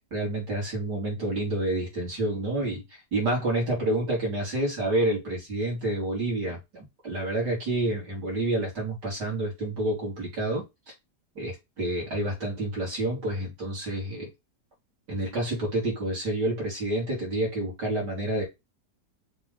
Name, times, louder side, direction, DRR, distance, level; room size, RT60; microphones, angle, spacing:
voice 1, 0.1-2.8 3.1-10.6 11.4-14.3 15.1-18.4, right 1 dB, 80° right, 4.1 m, -28 dB
5.9 x 4.4 x 4.0 m
omnidirectional pair, 1.8 m